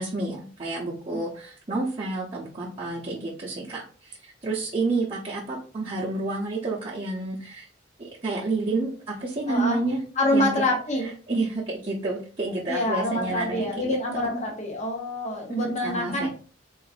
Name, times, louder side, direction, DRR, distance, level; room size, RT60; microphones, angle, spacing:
voice 1, 0.0-7.7 8.0-10.0 10.3-10.7 11.0-14.4 15.6-16.3, right 3 dB, 30° right, -8 dB, 0.7 m, -30 dB
voice 2, 9.5-9.8 10.2-11.1 12.7-16.3, left 1 dB, 35° left, 0 dB, 0.8 m, -26 dB
3.8 x 2.5 x 2.4 m, 0.41 s
head